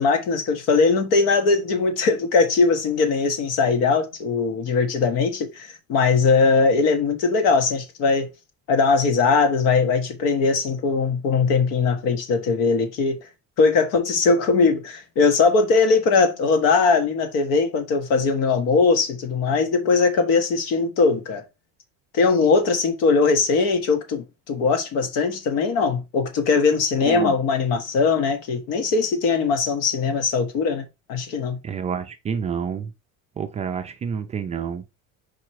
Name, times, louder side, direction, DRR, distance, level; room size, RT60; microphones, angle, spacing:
voice 1, 0.0-8.3 8.7-13.2 13.6-21.4 22.1-30.8 31.1-31.6, left 4 dB, 75° left, 1.6 m, -20 dB
voice 2, 31.6-32.9 33.4-34.8, right 6 dB, 20° right, 0.4 m, -28 dB
4.8 x 4.5 x 4.7 m
cardioid pair, 175°, 33 cm